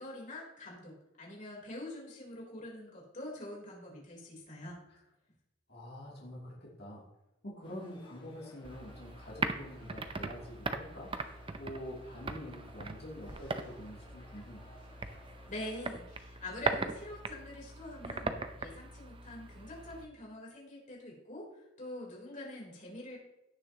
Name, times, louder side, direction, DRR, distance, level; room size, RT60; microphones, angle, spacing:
voice 1, 0.0-4.8 15.5-23.2, left 1 dB, 40° left, -3 dB, 3.7 m, -45 dB
voice 2, 5.7-7.1 7.4-11.1 11.5-14.6, equal, 60° left, -4 dB, 2.7 m, -46 dB
sound 1, 7.6-15.8, left 1 dB, 25° left, 1.7 m, -58 dB
sound 2, 8.6-20.1, right 3 dB, 30° right, 0.6 m, -40 dB
16.5 x 6.7 x 2.9 m, 0.93 s
head